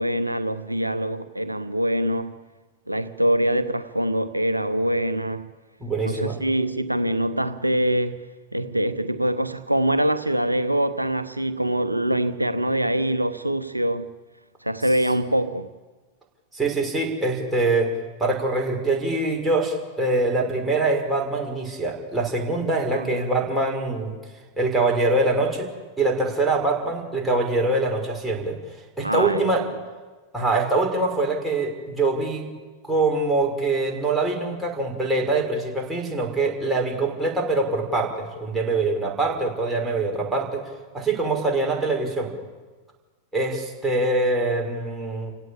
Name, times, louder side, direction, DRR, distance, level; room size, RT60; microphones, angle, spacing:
voice 1, 0.0-2.3 2.9-5.5 6.0-8.2 8.5-14.1 14.6-15.7 22.9-23.2 29.0-29.7, right 1 dB, 85° right, 0.9 m, -24 dB
voice 2, 5.8-6.4 16.5-17.9 18.2-24.1 24.6-25.7 26.0-28.6 29.0-29.6 30.3-32.5 32.9-40.6 40.9-42.3 43.3-45.3, right 2 dB, 5° right, 6.0 m, -24 dB
29.0 x 17.0 x 8.8 m
figure-of-eight pair, 90°, 0 cm